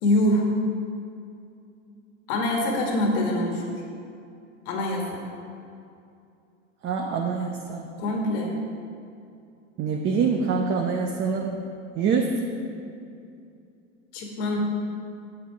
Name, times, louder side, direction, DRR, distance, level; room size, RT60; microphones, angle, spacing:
voice 1, 0.0-0.4 2.3-3.6 4.7-5.2 8.0-8.5 14.1-14.6, left 1 dB, 65° left, 0 dB, 1.8 m, -24 dB
voice 2, 6.8-7.9 9.8-11.5 12.0-12.3, right 5 dB, 30° right, 1 dB, 0.7 m, -25 dB
7.9 x 7.5 x 4.6 m, 2.5 s
hypercardioid pair, 110°, 37 cm